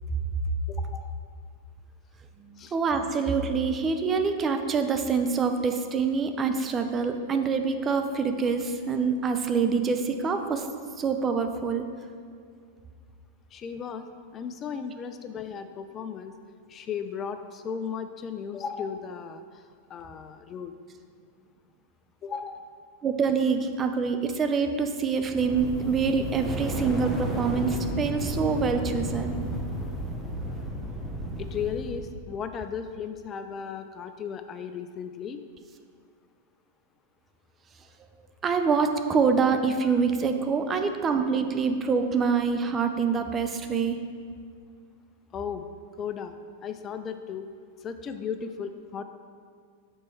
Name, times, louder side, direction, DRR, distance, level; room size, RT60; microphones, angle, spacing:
voice 1, 0.7-1.1 2.6-2.8 13.5-14.1 14.3-16.3 16.7-19.6 19.9-20.7 22.2-22.7 31.4-35.4 45.3-45.6 46.0-46.3 46.6-47.5 47.8-49.0, left 7 dB, 30° left, 9 dB, 0.3 m, -35 dB
voice 2, 2.7-10.7 11.0-11.9 23.0-29.4 38.4-44.0, right 5 dB, 25° right, 7 dB, 0.5 m, -25 dB
sound 1, 25.2-32.2, equal, ahead, 0.8 m, -33 dB
6.2 x 4.3 x 4.5 m, 2.2 s
hypercardioid pair, 105°, 0 cm